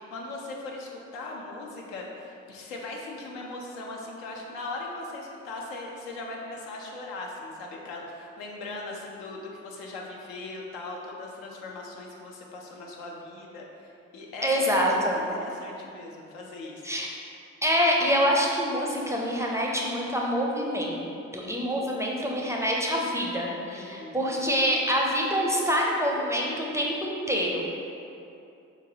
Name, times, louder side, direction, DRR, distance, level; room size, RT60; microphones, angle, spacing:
voice 1, 0.0-13.9 14.1-16.8 23.7-24.3, left 2 dB, 80° left, -1 dB, 0.5 m, -39 dB
voice 2, 14.4-15.2 16.8-17.1 17.6-21.0 21.3-27.6, equal, 10° right, -2 dB, 0.4 m, -26 dB
3.9 x 2.5 x 2.7 m, 2.7 s
hypercardioid pair, 45°, 37 cm